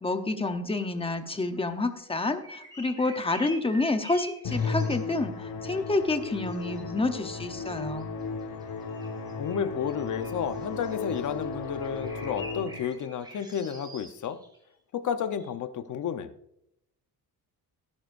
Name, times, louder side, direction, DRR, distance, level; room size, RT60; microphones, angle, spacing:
voice 1, 0.0-8.1, left 2 dB, 15° left, 7 dB, 0.9 m, -29 dB
sound 1, 2.4-5.4 5.7-7.1 7.5-8.2 8.6-14.6 15.3-15.5, equal, 10° right, 2.9 m, -47 dB
Musical instrument, 4.4-13.0, left 4 dB, 75° left, 4.3 m, -35 dB
voice 2, 9.4-14.4 14.9-16.3, left 8 dB, 50° left, 10 dB, 0.9 m, -32 dB
17.5 x 10.0 x 2.6 m, 0.77 s
cardioid pair, 145°, 39 cm